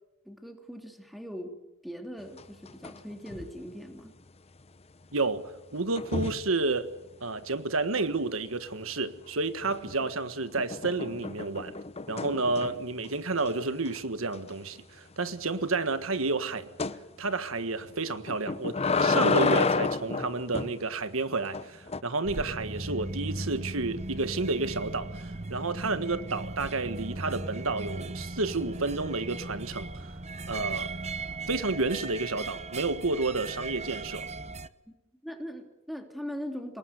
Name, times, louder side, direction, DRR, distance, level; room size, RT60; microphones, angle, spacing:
voice 1, 0.2-1.6 1.8-4.2 35.2-36.8, equal, ahead, 3.1 m, -40 dB
sound 1, 2.4-3.0 3.3-3.6 6.0-6.5 9.6-10.1 10.6-12.9 13.4-13.5 13.9-14.0 14.3-14.4 16.8-17.0 18.3-20.8 21.5-22.0, left 4 dB, 30° left, 1.0 m, -29 dB
voice 2, 5.1-6.9 7.2-11.8 12.1-16.7 17.2-30.1 30.5-30.9 31.5-34.3, right 3 dB, 75° right, 1.5 m, -30 dB
sound 2, 22.2-34.7, right 2 dB, 35° right, 1.0 m, -37 dB
29.5 x 19.0 x 9.5 m
head